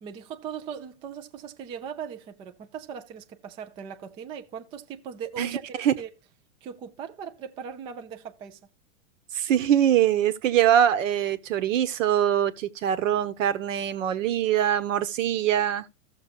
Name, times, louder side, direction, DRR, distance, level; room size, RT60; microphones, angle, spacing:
voice 1, 0.0-6.1 6.6-8.6, right 7 dB, 15° right, 0.4 m, -39 dB
voice 2, 5.4-5.9 9.3-15.9, right 10 dB, 65° right, 1.1 m, -23 dB
15.0 x 6.4 x 2.4 m
hypercardioid pair, 130°, 42 cm